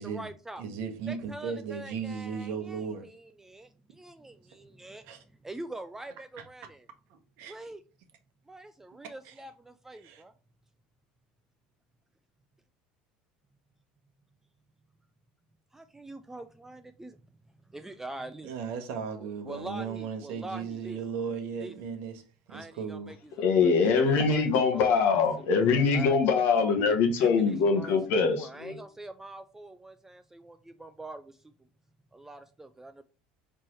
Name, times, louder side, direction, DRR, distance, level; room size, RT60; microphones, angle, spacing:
voice 1, 0.0-0.6 1.1-5.1 5.4-6.9 7.5-7.8 8.5-10.3 15.7-17.2 17.7-18.5 19.2-21.0 21.6-21.7 22.5-23.5 24.3-24.5 24.7-25.2 25.7-26.2 27.5-28.0 28.3-31.5 32.1-33.0, right 2 dB, 10° right, 0.3 m, -44 dB
voice 2, 0.6-3.1 5.0-5.2 6.4-6.5 7.1-7.6 9.2-9.3 10.0-10.2 18.4-22.2 22.5-23.1, right 6 dB, 65° right, 0.9 m, -36 dB
voice 3, 23.4-28.8, left 5 dB, 65° left, 1.0 m, -23 dB
4.4 x 3.0 x 3.1 m
hypercardioid pair, 85°, 4 cm